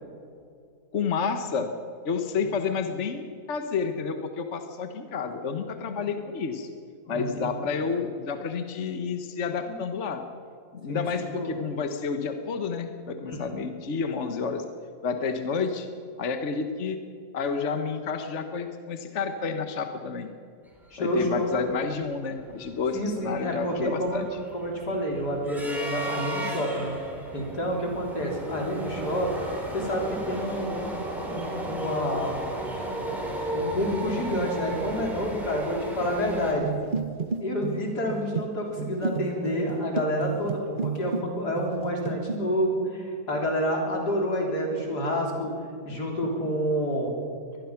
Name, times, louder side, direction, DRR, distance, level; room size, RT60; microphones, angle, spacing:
voice 1, 0.9-1.7 2.0-6.7 7.1-10.2 10.7-14.6 15.0-15.9 16.2-17.0 17.3-20.3 21.0-24.3, left 5 dB, 50° left, 7 dB, 1.4 m, -30 dB
voice 2, 5.8-6.1 7.1-7.5 7.8-7.9 10.9-11.1 11.3-11.5 13.2-13.6 20.9-21.5 22.9-24.3 24.5-26.9 27.3-29.3 29.7-31.0 31.3-32.4 33.5-36.7 37.4-45.5 45.9-47.1, equal, 85° left, 0 dB, 4.1 m, -29 dB
sound 1, 21.1-21.2 21.5-21.7 22.1-36.5, right 1 dB, ahead, 4.9 m, -34 dB
sound 2, 36.6-41.3 41.6-42.4, right 6 dB, 40° right, 1.0 m, -32 dB
24.0 x 20.0 x 5.9 m, 2.4 s
omnidirectional pair, 1.7 m